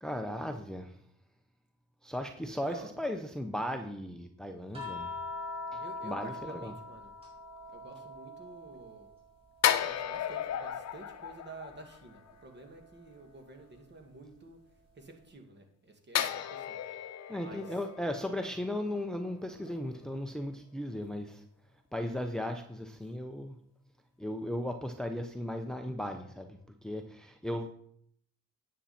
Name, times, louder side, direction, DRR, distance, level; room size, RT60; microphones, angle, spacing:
voice 1, 0.0-1.0 2.0-5.2 5.7-6.7 17.3-21.4 21.9-23.6 24.2-27.7, left 1 dB, ahead, 6 dB, 0.8 m, -36 dB
sound 1, 4.7-9.2 9.6-11.2 12.7-12.9, left 3 dB, 20° right, 4.4 m, -43 dB
voice 2, 5.8-7.1 7.7-9.1 9.8-14.6 15.0-16.8 17.4-17.8, right 2 dB, 35° right, 4 dB, 2.2 m, -50 dB
sound 2, 9.6-12.3 16.1-19.4 19.7-19.8, left 10 dB, 60° left, 0.9 m, -34 dB
9.8 x 7.5 x 4.3 m, 0.66 s
cardioid pair, 90°, 30 cm